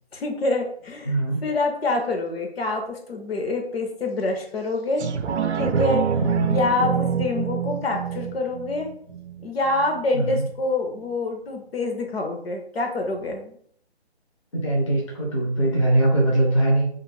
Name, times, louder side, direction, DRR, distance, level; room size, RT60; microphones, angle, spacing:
voice 1, 0.1-1.1 1.4-5.1 5.5-6.0 6.5-8.9 9.4-13.5, left 2 dB, 65° left, 3 dB, 0.7 m, -26 dB
voice 2, 1.1-1.4 6.2-6.6 10.1-10.4 14.5-16.9, right 1 dB, 30° left, -2 dB, 0.5 m, -21 dB
sound 1, 5.0-10.0 10.5-10.6, right 7 dB, 85° right, 0.5 m, -26 dB
2.4 x 2.1 x 3.1 m, 0.62 s
figure-of-eight pair, 155°, 33 cm